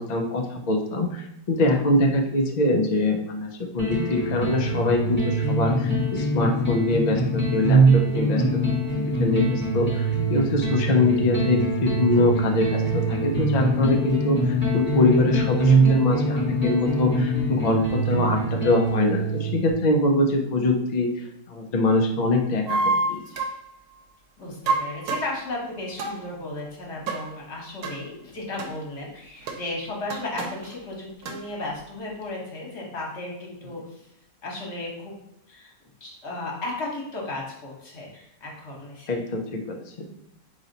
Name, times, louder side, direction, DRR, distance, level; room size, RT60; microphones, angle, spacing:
voice 1, 0.0-3.5 3.7-8.6 8.9-22.8 23.1-23.2 39.1-39.8, left 2 dB, 70° left, 2 dB, 0.4 m, -23 dB
sound 1, 3.8-19.7, right 2 dB, 10° left, 0.9 m, -23 dB
sound 2, 22.7-23.6 24.7-25.4 26.0-26.2 27.1-27.3 27.8-28.0 28.6-28.7 29.5-29.6 30.1-30.7 31.2-31.4, right 3 dB, 85° right, 1.2 m, -27 dB
voice 2, 24.4-34.1 34.4-35.1 35.5-35.7 36.0-39.2, left 2 dB, 50° left, -2 dB, 1.4 m, -35 dB
4.3 x 3.0 x 3.9 m, 0.80 s
omnidirectional pair, 1.6 m